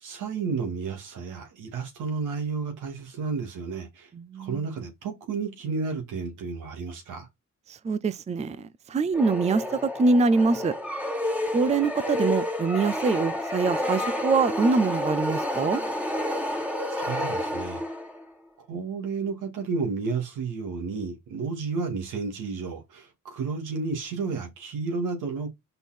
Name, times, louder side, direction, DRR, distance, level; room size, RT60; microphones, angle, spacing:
voice 1, 0.0-4.1 4.4-7.3 16.9-17.8 18.7-25.5, right 4 dB, 85° right, 2.5 m, -32 dB
voice 2, 4.1-4.6 7.7-10.7 11.5-15.8, right 4 dB, 20° right, 0.5 m, -24 dB
sound 1, 9.1-18.2, left 1 dB, 5° right, 1.5 m, -30 dB
5.4 x 4.4 x 4.4 m
cardioid pair, 90°, 30 cm